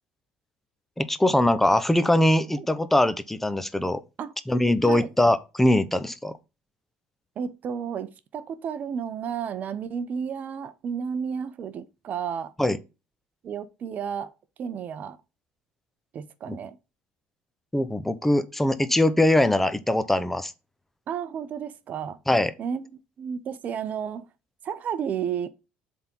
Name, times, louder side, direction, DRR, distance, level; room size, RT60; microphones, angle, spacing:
voice 1, 1.0-4.0 4.5-6.3 12.6-12.8 16.5-16.6 17.7-20.5 22.3-22.5, left 1 dB, 5° left, 0.8 m, -22 dB
voice 2, 7.4-12.5 13.4-14.3 14.6-15.2 16.1-16.8 21.1-22.2 22.6-22.8 23.2-24.3 24.6-25.5, right 7 dB, 50° right, 0.7 m, -32 dB
7.4 x 3.7 x 4.5 m
supercardioid pair, 90°, 4 cm